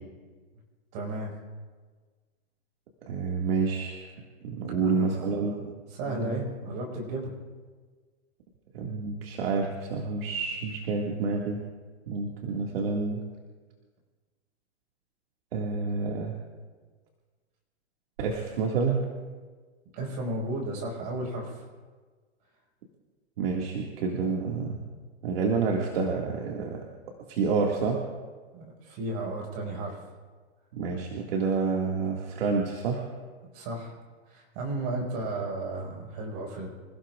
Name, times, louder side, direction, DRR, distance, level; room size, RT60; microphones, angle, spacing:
voice 1, 0.9-1.3 4.8-5.6 5.9-7.3 19.9-21.7 28.5-30.1 33.5-33.9 34.3-36.7, right 2 dB, 40° right, -1 dB, 5.4 m, -34 dB
voice 2, 3.1-4.1 4.4-5.7 6.1-6.4 8.7-11.6 12.1-13.2 15.5-16.3 18.2-19.0 23.4-24.8 25.2-26.8 27.3-28.0 30.7-33.0, right 4 dB, 60° right, -1 dB, 2.2 m, -28 dB
27.0 x 16.0 x 2.5 m, 1.4 s
supercardioid pair, 165°, 33 cm